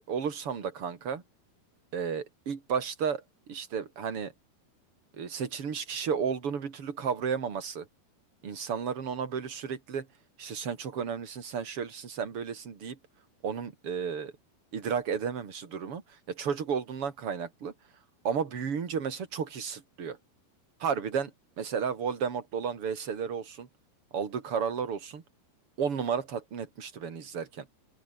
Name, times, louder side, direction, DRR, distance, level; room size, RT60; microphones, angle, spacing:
voice 1, 0.1-1.2 1.9-4.3 5.2-7.9 8.4-10.1 10.4-13.0 13.4-14.3 14.7-16.0 16.3-17.7 18.2-20.2 20.8-21.3 21.6-23.7 24.1-25.2 25.8-27.7, right 6 dB, 40° right, 3.3 m, -33 dB
open air
omnidirectional pair, 4.6 m